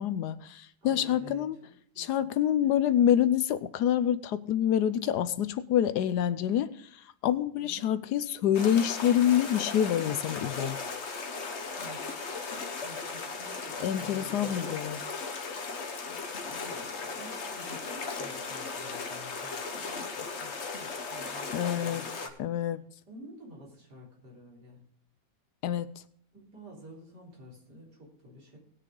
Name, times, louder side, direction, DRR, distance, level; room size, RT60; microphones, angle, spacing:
voice 1, 0.0-1.6 2.0-10.8 13.8-15.0 21.5-22.0 22.4-22.8 25.6-25.9, left 10 dB, 70° left, 14 dB, 1.1 m, -27 dB
voice 2, 0.8-2.4 7.5-7.8 11.7-12.1 12.8-14.6 16.0-22.3 23.1-24.8 26.3-28.6, equal, 60° right, -3 dB, 4.4 m, -50 dB
sound 1, 8.5-22.3, left 4 dB, 40° left, 1.3 m, -37 dB
19.0 x 6.6 x 3.8 m, 0.63 s
omnidirectional pair, 2.0 m